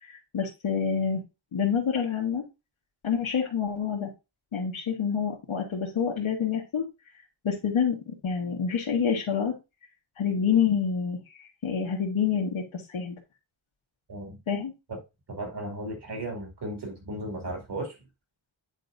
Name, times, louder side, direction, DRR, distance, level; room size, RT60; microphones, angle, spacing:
voice 1, 0.0-1.2 1.5-2.4 3.0-4.1 4.5-6.9 7.4-9.6 10.2-11.2 11.6-13.2 14.5-14.7, left 7 dB, 85° left, 1.5 m, -27 dB
voice 2, 15.3-18.0, right 1 dB, 55° right, 2.6 m, -35 dB
9.2 x 4.6 x 2.6 m
wide cardioid pair, 150°, 47 cm